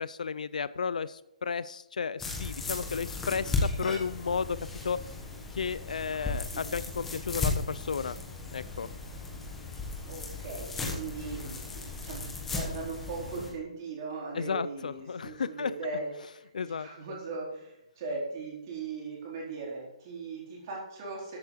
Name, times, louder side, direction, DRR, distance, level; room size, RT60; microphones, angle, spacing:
voice 1, 0.0-4.6 4.8-5.0 5.5-8.2 8.5-8.9 14.3-15.7 16.5-16.9, left 6 dB, 85° left, 16 dB, 0.5 m, -33 dB
sound 1, 2.2-13.5, left 3 dB, 5° left, 1.2 m, -35 dB
voice 2, 10.0-21.4, right 3 dB, 25° right, -4 dB, 4.1 m, -39 dB
14.0 x 8.4 x 4.7 m, 0.85 s
hypercardioid pair, 180°, 4 cm